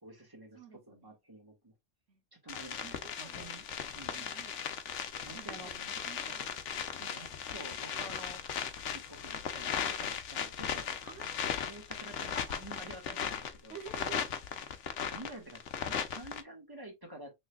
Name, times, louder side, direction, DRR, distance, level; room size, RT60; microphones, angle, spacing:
voice 1, 0.0-1.7 2.3-3.6 3.9-4.3 5.2-5.7 7.1-7.3 7.5-8.4 8.8-10.9 11.7-13.8 15.1-17.3, right 1 dB, 20° right, 1.7 m, -49 dB
voice 2, 0.5-1.2 2.1-2.2 2.8-3.5 4.1-4.7 5.3-7.5 11.0-11.5 13.7-14.3, right 7 dB, 85° right, 1.2 m, -51 dB
sound 1, 2.5-16.4, left 8 dB, 85° left, 1.1 m, -37 dB
6.2 x 3.3 x 2.3 m
omnidirectional pair, 1.2 m